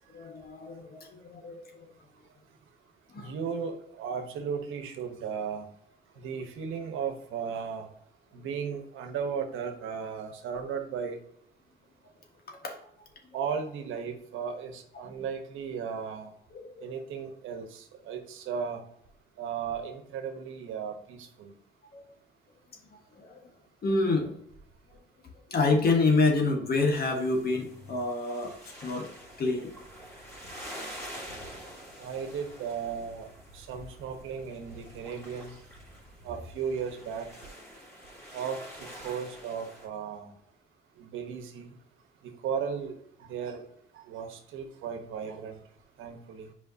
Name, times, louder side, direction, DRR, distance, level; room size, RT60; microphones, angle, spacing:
voice 1, 0.1-1.8 3.1-3.3 12.5-12.8 14.9-15.1 16.5-16.9 21.9-22.0 23.2-23.4 23.8-24.3 25.5-28.5 28.8-29.1 29.4-29.7, left 3 dB, 50° left, 2 dB, 1.5 m, -27 dB
voice 2, 3.1-5.7 6.2-7.9 8.3-11.2 13.3-16.3 16.8-18.8 19.4-21.5 32.0-33.3 33.5-35.6 36.2-37.3 38.3-40.3 41.0-41.7 42.2-42.9 43.2-43.6 43.9-45.6 46.0-46.5, right 6 dB, 85° right, 6 dB, 1.1 m, -35 dB
sound 1, 26.9-39.9, equal, 15° left, 2.8 m, -47 dB
7.9 x 5.0 x 2.8 m, 0.71 s
cardioid pair, 90°, 20 cm